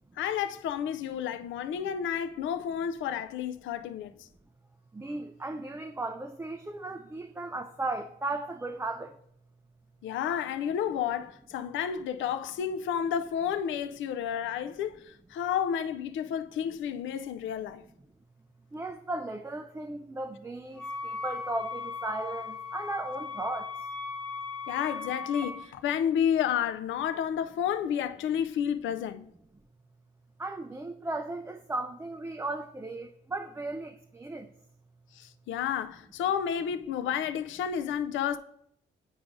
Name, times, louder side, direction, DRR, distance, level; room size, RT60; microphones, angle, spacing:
voice 1, 0.2-4.3 10.0-17.8 24.7-29.3 35.1-38.4, left 8 dB, 75° left, 0.4 m, -31 dB
voice 2, 4.9-9.1 18.7-23.7 30.4-34.5, right 2 dB, 10° right, 0.4 m, -36 dB
Wind instrument woodwind instrument, 20.8-25.7, left 4 dB, 5° left, 0.8 m, -38 dB
8.7 x 4.8 x 2.5 m
cardioid pair, 75°, 20 cm